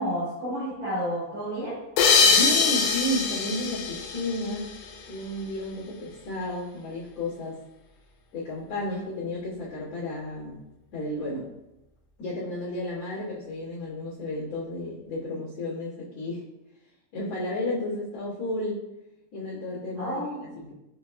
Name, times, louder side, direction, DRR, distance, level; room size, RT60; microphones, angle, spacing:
voice 1, 0.0-1.8 20.0-20.5, equal, 75° right, -8 dB, 1.7 m, -30 dB
sound 1, 2.0-5.0, left 5 dB, 85° left, 2.8 m, -23 dB
voice 2, 2.2-4.7 5.1-7.6 8.3-10.6 10.9-11.5 12.2-16.4 17.1-18.8 19.3-20.7, left 1 dB, 60° left, -10 dB, 1.7 m, -32 dB
7.4 x 2.9 x 2.2 m, 0.95 s
omnidirectional pair, 4.9 m